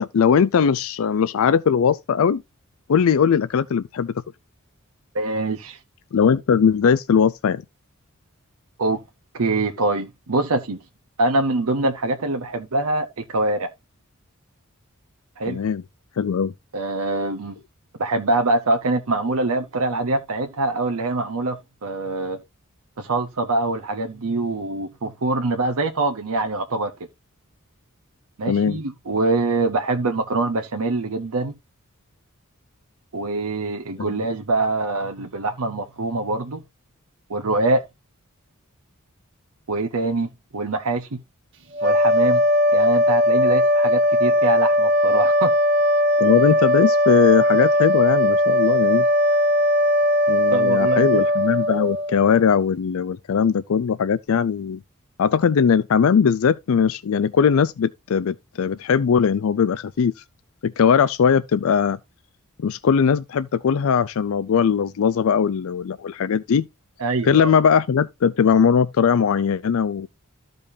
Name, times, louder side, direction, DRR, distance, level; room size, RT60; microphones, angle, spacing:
voice 1, 0.0-2.4 2.9-4.2 6.1-7.6 15.5-15.8 16.2-16.5 28.5-28.8 34.0-34.1 46.2-49.1 50.3-54.8 55.2-60.2 60.6-62.0 62.6-66.7 67.2-70.1, left 6 dB, 65° left, 0.4 m, -19 dB
voice 2, 5.1-5.8 8.8-9.0 9.3-10.8 11.2-13.7 15.4-15.6 16.7-17.6 18.0-21.6 21.8-22.4 23.0-26.9 28.4-31.5 33.1-36.6 37.3-37.8 39.7-41.2 41.8-42.4 42.7-45.5 50.5-51.2 67.0-67.5, right 2 dB, 80° right, 0.8 m, -24 dB
sound 1, 41.7-52.4, equal, 60° right, 1.7 m, -19 dB
14.0 x 5.2 x 2.7 m
head